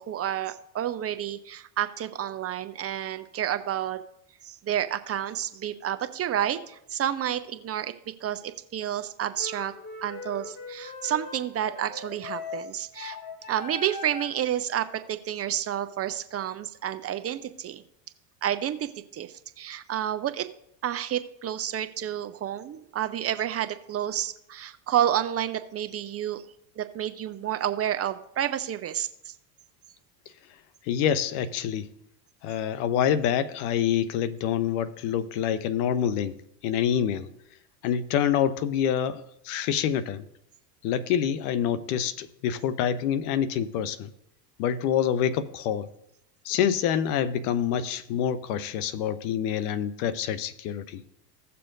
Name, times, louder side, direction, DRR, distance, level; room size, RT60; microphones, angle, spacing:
voice 1, 0.0-4.0 4.4-7.9 8.2-9.7 10.0-13.2 13.5-17.8 18.4-20.5 20.8-26.4 26.8-29.3, right 10 dB, 30° right, 10 dB, 0.6 m, -30 dB
sound 1, 9.4-14.5, left 3 dB, 40° left, 2.3 m, -40 dB
voice 2, 30.9-31.9 32.4-36.4 36.6-37.3 37.8-40.3 40.8-44.1 44.6-45.9 46.4-51.0, left 9 dB, 65° left, 15 dB, 0.9 m, -26 dB
16.5 x 6.9 x 2.6 m, 0.78 s
hypercardioid pair, 90°, 49 cm